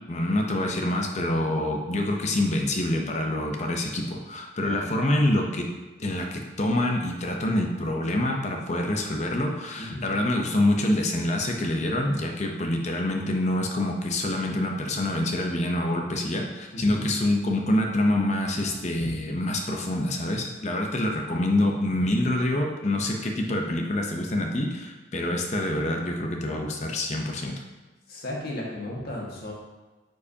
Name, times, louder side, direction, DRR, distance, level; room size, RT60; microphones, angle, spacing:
voice 1, 0.1-5.7 6.0-27.6, left 1 dB, 35° left, 2 dB, 0.7 m, -26 dB
voice 2, 9.8-10.1 16.7-17.1 19.0-19.2 28.1-29.5, left 1 dB, 55° left, -3 dB, 1.6 m, -35 dB
9.8 x 4.6 x 2.8 m, 1.2 s
head